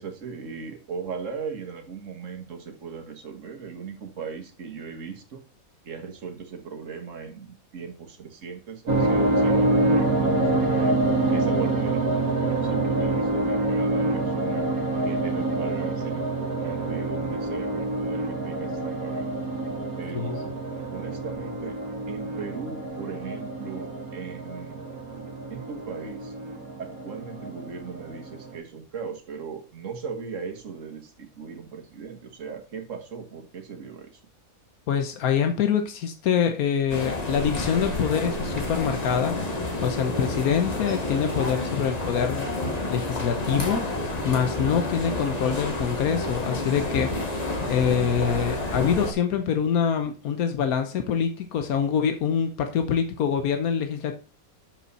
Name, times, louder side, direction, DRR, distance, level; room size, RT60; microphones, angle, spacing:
voice 1, 0.0-5.4 5.8-11.0 11.3-14.7 15.0-19.3 20.0-20.6 20.9-21.8 22.1-24.9 25.5-26.3 26.8-34.2, right 6 dB, 60° right, 4 dB, 1.7 m, -38 dB
sound 1, 8.9-28.6, right 2 dB, 75° right, 2.1 m, -26 dB
voice 2, 34.9-39.4 39.8-42.5 42.9-43.8 44.2-47.4 47.7-54.2, left 7 dB, 90° left, 7 dB, 1.3 m, -25 dB
sound 2, 36.9-49.1, left 2 dB, 30° left, 1.3 m, -29 dB
sound 3, 42.5-48.9, left 2 dB, 65° left, 1.9 m, -44 dB
7.2 x 6.0 x 4.1 m, 0.36 s
omnidirectional pair, 1.5 m